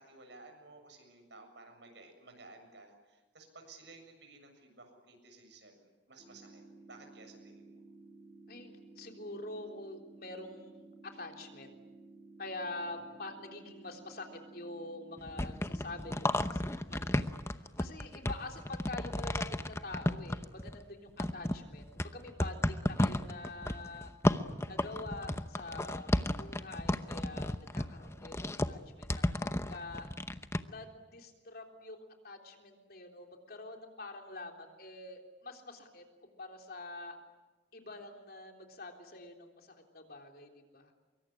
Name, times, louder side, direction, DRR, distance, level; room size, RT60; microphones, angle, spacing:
voice 1, 0.0-6.6 6.9-7.8 13.0-13.2, right 3 dB, 70° right, 5 dB, 7.2 m, -55 dB
sound 1, 6.2-16.2, right 3 dB, 30° right, 3.8 m, -55 dB
voice 2, 8.5-11.8 12.4-14.3 14.5-24.1 24.7-30.1 30.6-37.2 37.7-40.9, left 2 dB, 55° left, 3 dB, 3.6 m, -46 dB
sound 2, 15.2-20.8 21.2-30.6, left 1 dB, 15° left, 0.8 m, -33 dB
25.0 x 23.5 x 9.9 m, 1.2 s
head